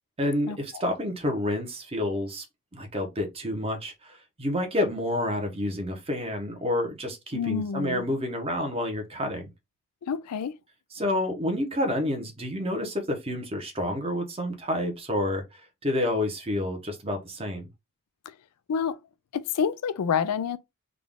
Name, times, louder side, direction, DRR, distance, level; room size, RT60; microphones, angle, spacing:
voice 1, 0.2-2.4 2.7-9.5 10.9-17.7, left 1 dB, 25° right, 0.9 m, -29 dB
voice 2, 7.3-8.1 10.0-10.5 18.7-19.0 19.3-20.6, left 7 dB, 85° left, 0.4 m, -28 dB
3.7 x 2.4 x 3.6 m
head